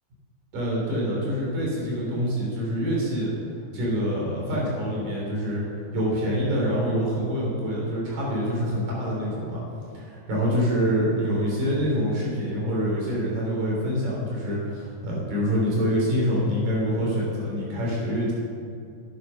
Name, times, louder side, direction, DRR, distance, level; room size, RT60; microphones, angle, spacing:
voice 1, 0.5-3.3 3.7-5.6 5.9-9.6 9.9-18.3, equal, 65° right, -5 dB, 4.9 m, -26 dB
10.5 x 8.8 x 6.2 m, 2.5 s
omnidirectional pair, 4.2 m